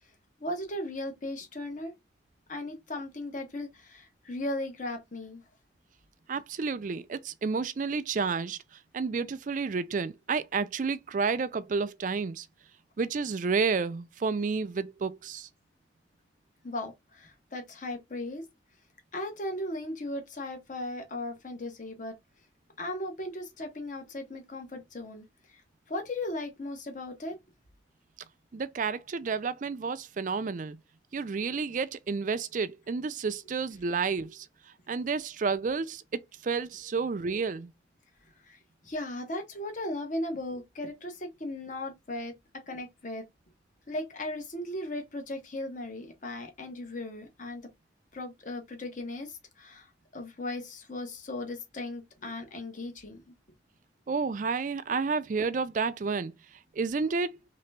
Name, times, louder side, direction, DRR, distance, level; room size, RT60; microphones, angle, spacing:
voice 1, 0.4-1.9 2.5-5.4 16.6-18.5 19.1-22.1 22.8-25.2 25.9-27.4 38.8-42.3 42.7-43.2 43.9-47.6 48.1-49.9 50.1-53.2, left 1 dB, 45° left, 1.0 m, -37 dB
voice 2, 6.3-8.6 8.9-12.5 13.0-15.5 28.5-30.8 31.1-34.5 34.9-37.7 54.1-56.3 56.8-57.4, right 4 dB, 45° right, 0.4 m, -30 dB
3.3 x 2.9 x 3.3 m
head